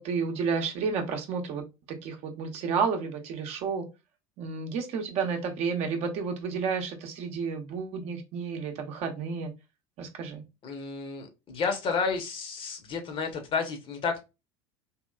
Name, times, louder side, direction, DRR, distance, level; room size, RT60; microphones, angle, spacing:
voice 1, 0.0-1.6 2.0-3.8 4.4-9.5 10.0-10.4, right 5 dB, 50° right, 0.8 m, -31 dB
voice 2, 10.6-14.2, left 5 dB, 40° left, 0.9 m, -31 dB
2.9 x 2.8 x 2.3 m
figure-of-eight pair, 75°, 14 cm